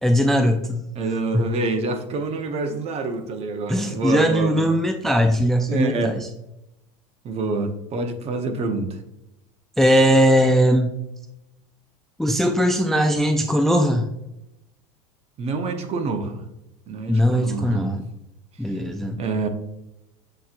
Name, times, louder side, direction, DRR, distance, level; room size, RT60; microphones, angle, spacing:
voice 1, 0.0-0.8 3.7-6.3 9.8-10.9 12.2-14.1 17.1-18.0 18.6-19.2, equal, ahead, 4 dB, 0.3 m, -19 dB
voice 2, 1.0-4.6 5.7-6.2 7.2-9.0 15.4-16.4 16.9-18.0 19.2-19.5, right 3 dB, 40° right, 7 dB, 0.7 m, -26 dB
7.4 x 2.9 x 2.5 m, 0.89 s
supercardioid pair, 105°, 16 cm